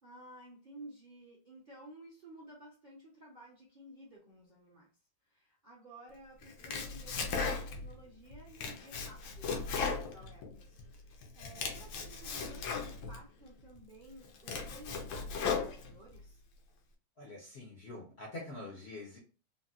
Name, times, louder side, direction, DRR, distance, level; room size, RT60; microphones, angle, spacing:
voice 1, 0.0-4.9 5.3-16.4, right 1 dB, 40° right, 0.6 m, -54 dB
Domestic sounds home sounds, 6.4-7.9 8.3-10.8 11.2-13.2 13.7-13.8 14.2-16.2, left 5 dB, 75° left, 1.3 m, -37 dB
voice 2, 17.2-19.2, left 2 dB, 55° left, 0.7 m, -45 dB
3.9 x 2.1 x 2.4 m
omnidirectional pair, 1.9 m